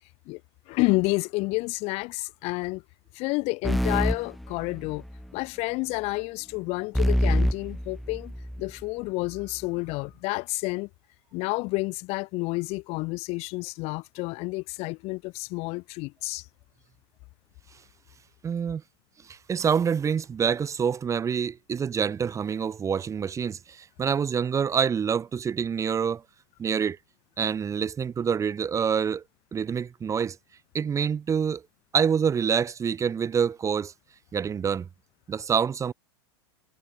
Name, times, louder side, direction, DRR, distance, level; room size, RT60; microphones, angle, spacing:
voice 1, 0.7-2.8 3.1-5.0 5.3-8.3 8.6-10.9 11.3-16.5, left 25 dB, 50° left, 1.0 m, -30 dB
sound 1, 3.6-5.3 6.9-8.7, equal, ahead, 0.8 m, -26 dB
voice 2, 18.4-18.8 19.3-26.2 26.6-27.0 27.4-29.2 29.5-30.4 30.7-31.6 31.9-33.9 34.3-34.9 35.3-35.9, right 7 dB, 20° right, 1.1 m, -26 dB
hypercardioid pair, 100°, 14 cm